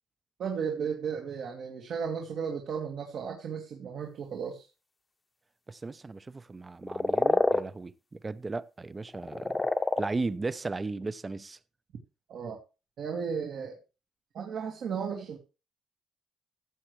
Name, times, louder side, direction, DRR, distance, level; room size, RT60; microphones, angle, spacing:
voice 1, 0.4-4.7 12.3-12.6 13.0-13.8 14.3-15.4, right 6 dB, 65° right, 2.0 m, -34 dB
voice 2, 5.7-9.7 10.0-11.6, right 3 dB, 25° right, 0.7 m, -36 dB
sound 1, 6.8-7.6 9.1-10.1, left 2 dB, 20° left, 0.9 m, -26 dB
14.5 x 7.9 x 3.2 m
cardioid pair, 90°, 0 cm